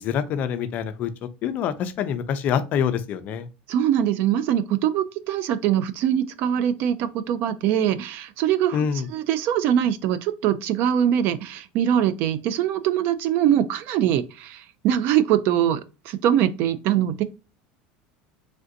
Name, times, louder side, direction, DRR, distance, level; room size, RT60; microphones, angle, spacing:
voice 1, 0.0-3.5 8.7-9.1, left 8 dB, 40° left, 0.4 m, -26 dB
voice 2, 3.7-8.8 9.1-17.2, right 10 dB, 50° right, 0.3 m, -22 dB
3.3 x 2.5 x 2.5 m
supercardioid pair, 145°, 4 cm